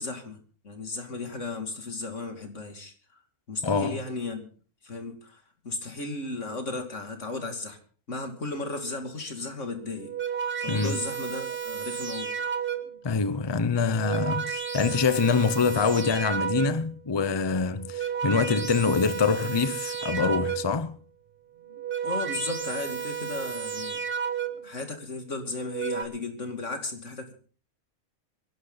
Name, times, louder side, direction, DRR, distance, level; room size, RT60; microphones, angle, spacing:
voice 1, 0.0-2.9 3.5-4.5 4.8-7.8 8.1-10.1 10.6-12.3 22.0-24.0 24.6-27.3, left 3 dB, 80° left, 3.0 m, -35 dB
voice 2, 3.6-4.0 10.7-11.0 13.0-21.0, left 5 dB, 25° left, 0.6 m, -25 dB
sound 1, 9.9-13.0 13.8-17.0 17.7-20.9 21.6-24.8 25.5-26.0, right 7 dB, 50° right, 1.6 m, -32 dB
26.0 x 11.5 x 4.0 m
omnidirectional pair, 1.3 m